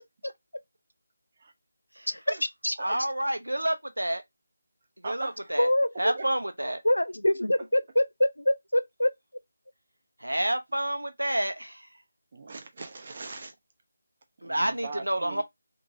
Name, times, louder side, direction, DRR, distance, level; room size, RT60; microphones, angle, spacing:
voice 1, 2.8-4.2 5.0-5.7 6.0-6.8 10.2-11.8 14.4-15.4, right 1 dB, 80° right, 0.8 m, -29 dB
voice 2, 5.0-5.5 6.1-6.3 12.3-13.5 14.4-15.4, right 3 dB, 40° right, 0.7 m, -40 dB
voice 3, 5.6-6.1 6.8-9.1, left 1 dB, 80° left, 0.5 m, -25 dB
2.9 x 2.6 x 2.6 m
figure-of-eight pair, 160°, 0 cm